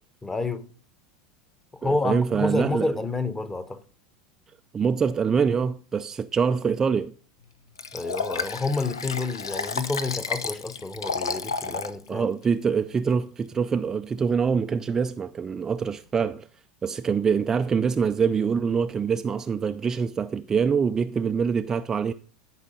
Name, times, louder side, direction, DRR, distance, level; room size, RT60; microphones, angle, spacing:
voice 1, 0.2-0.7 1.7-3.8 7.9-12.3, left 3 dB, 15° left, 1.1 m, -29 dB
voice 2, 1.8-3.0 4.7-7.1 12.1-16.5 16.8-22.1, right 6 dB, 20° right, 0.4 m, -25 dB
Liquid, 7.8-12.0 12.4-12.5, left 5 dB, 75° left, 0.7 m, -31 dB
12.5 x 5.6 x 5.3 m
figure-of-eight pair, 80°, 2 cm